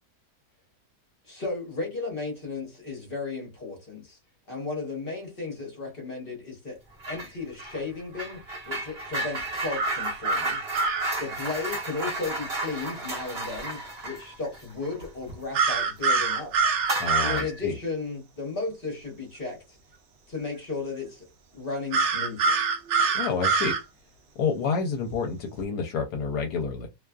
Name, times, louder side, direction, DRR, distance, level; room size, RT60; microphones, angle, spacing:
voice 1, 1.2-4.2 4.5-6.8 7.1-10.6 11.2-16.7 17.2-19.8 20.3-21.2 21.5-22.6, left 4 dB, 40° left, 1.0 m, -34 dB
sound 1, 7.0-7.3 7.6-15.8 16.1-16.3 16.8-17.6, right 2 dB, 45° right, 1.1 m, -33 dB
sound 2, 9.8-11.1 15.5-17.4 21.9-23.8, right 4 dB, 75° right, 0.6 m, -24 dB
voice 2, 17.0-17.8 23.1-23.8 24.4-26.9, left 5 dB, 75° left, 1.1 m, -29 dB
2.8 x 2.3 x 2.2 m
omnidirectional pair, 1.8 m